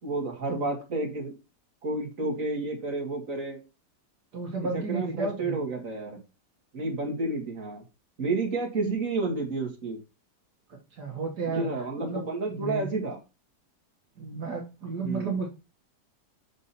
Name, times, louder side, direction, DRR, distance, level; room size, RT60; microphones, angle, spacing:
voice 1, 0.0-1.3 1.8-3.6 4.7-6.2 6.7-7.8 8.2-10.0 11.5-13.2 15.0-15.4, right 3 dB, 50° right, 1 dB, 2.7 m, -30 dB
voice 2, 4.3-5.6 10.7-11.7 12.0-12.9 14.2-15.5, right 4 dB, 65° right, -1 dB, 2.3 m, -33 dB
6.5 x 6.2 x 4.3 m, 0.28 s
omnidirectional pair, 1.9 m